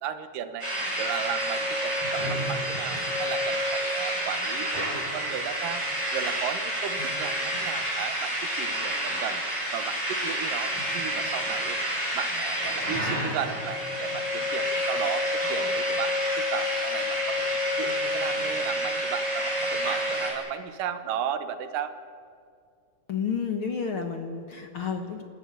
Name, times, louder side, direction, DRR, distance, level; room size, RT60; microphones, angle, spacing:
voice 1, 0.0-0.7 1.0-5.9 6.1-9.4 9.7-11.8 12.1-17.5 17.8-21.9, right 9 dB, 80° right, 10 dB, 2.8 m, -35 dB
sound 1, 0.6-20.3, equal, 10° right, 7.3 m, -29 dB
voice 2, 23.1-25.2, left 6 dB, 50° left, 5 dB, 1.7 m, -30 dB
29.0 x 13.5 x 9.2 m, 2.2 s
omnidirectional pair, 3.8 m